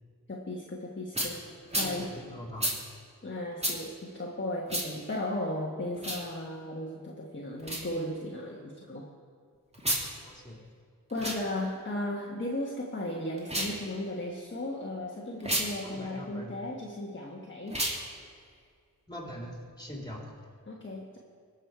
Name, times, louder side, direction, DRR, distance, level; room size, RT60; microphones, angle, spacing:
voice 1, 0.3-1.4 1.7-2.2 3.2-9.1 11.1-17.8 20.7-21.2, left 1 dB, 35° left, -2 dB, 1.4 m, -36 dB
sound 1, 1.1-1.3 1.7-1.9 2.6-2.8 3.6-3.8 4.7-4.9 5.9-6.2 7.6-7.8 9.7-10.0 11.1-11.4 13.4-13.8 15.4-15.7 17.7-18.0, right 1 dB, 20° right, 2.5 m, -30 dB
voice 2, 1.8-2.8 10.2-10.6 15.8-16.5 19.1-20.2, equal, 10° left, -1 dB, 3.1 m, -42 dB
19.5 x 6.5 x 4.6 m, 2.1 s
cardioid pair, 55°, 35 cm